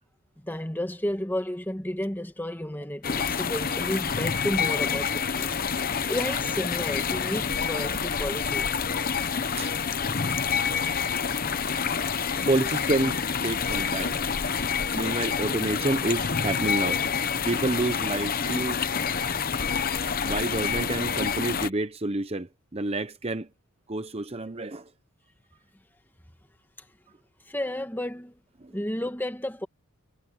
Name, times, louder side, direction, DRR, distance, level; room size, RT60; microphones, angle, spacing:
voice 1, 0.4-8.8 27.5-28.4 28.7-29.7, left 1 dB, 10° left, 1.5 m, -32 dB
sound 1, 3.0-21.7, left 6 dB, 40° left, 0.9 m, -28 dB
voice 2, 9.3-9.8 10.6-10.7 11.0-11.1 12.5-14.2 14.9-18.8 20.2-23.5 23.9-24.9 28.6-28.7, right 2 dB, 25° right, 0.8 m, -29 dB
head